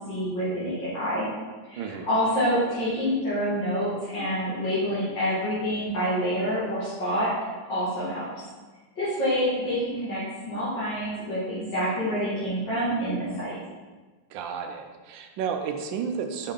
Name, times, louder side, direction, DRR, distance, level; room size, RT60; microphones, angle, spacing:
voice 1, 0.1-1.2 1.7-7.3 7.7-8.2 9.0-10.2 10.5-13.5, equal, 80° left, -11 dB, 2.4 m, -27 dB
voice 2, 1.8-2.1 14.3-16.5, right 6 dB, 85° right, 5 dB, 1.3 m, -32 dB
5.5 x 5.5 x 3.5 m, 1.3 s
omnidirectional pair, 2.0 m